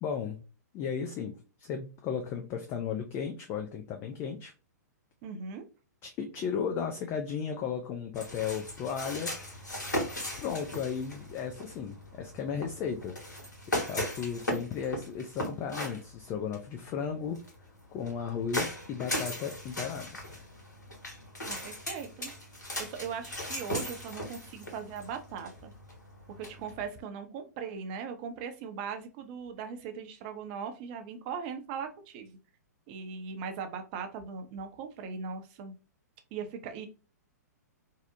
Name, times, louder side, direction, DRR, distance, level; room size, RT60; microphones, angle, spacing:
voice 1, 0.0-0.4 0.7-4.5 6.0-9.3 10.4-17.4 17.9-20.2, left 7 dB, 25° left, 4 dB, 0.3 m, -35 dB
voice 2, 5.2-5.7 21.5-22.3 22.8-25.7 26.4-32.4 32.9-35.7 36.3-36.9, right 6 dB, 35° right, 6 dB, 0.5 m, -39 dB
sound 1, 8.1-26.9, left 1 dB, 80° left, 1.1 m, -38 dB
2.7 x 2.0 x 2.5 m, 0.33 s
figure-of-eight pair, 110°, 9 cm